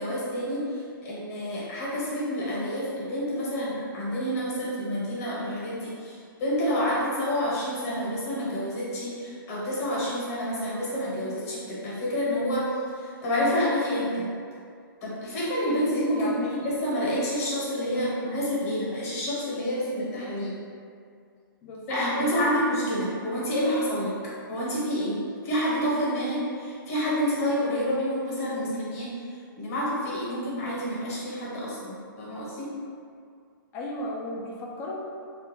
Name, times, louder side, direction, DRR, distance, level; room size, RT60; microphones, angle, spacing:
voice 1, 0.0-14.3 15.0-20.5 21.9-24.1 24.5-29.1 29.6-32.7, equal, 40° left, -7 dB, 1.0 m, -28 dB
voice 2, 16.1-16.5 21.6-22.0 33.7-35.0, left 1 dB, 20° left, -3 dB, 0.4 m, -34 dB
2.4 x 2.1 x 2.9 m, 2.2 s
hypercardioid pair, 140°, 12 cm